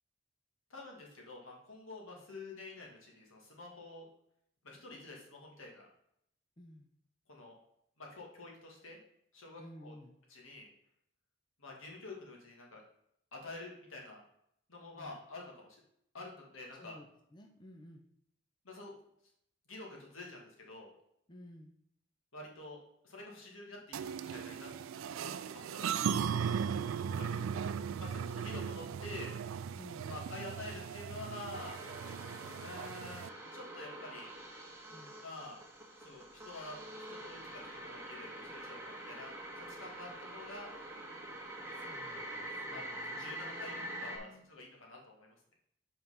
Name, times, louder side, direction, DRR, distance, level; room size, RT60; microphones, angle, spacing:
voice 1, 0.7-4.1 4.6-5.9 7.3-7.5 8.0-9.0 9.3-9.9 10.3-10.7 11.6-12.8 13.3-14.2 14.7-15.8 16.1-17.0 18.6-19.0 19.7-20.9 22.3-26.5 27.1-27.7 27.9-29.7 30.0-31.8 32.6-33.2 33.5-34.3 35.2-35.6 36.0-40.7 42.7-45.4, left 2 dB, 80° left, -1 dB, 1.9 m, -48 dB
voice 2, 6.6-6.9 9.6-10.2 15.0-15.2 16.8-18.1 21.3-21.7 27.0-27.7 29.7-30.3 34.9-35.2 41.7-44.4, equal, 20° left, 2 dB, 0.5 m, -54 dB
sound 1, 23.9-33.3, right 7 dB, 80° right, 0.3 m, -37 dB
sound 2, 31.5-44.2, right 1 dB, 15° right, 1.5 m, -45 dB
5.4 x 4.5 x 5.4 m, 0.74 s
head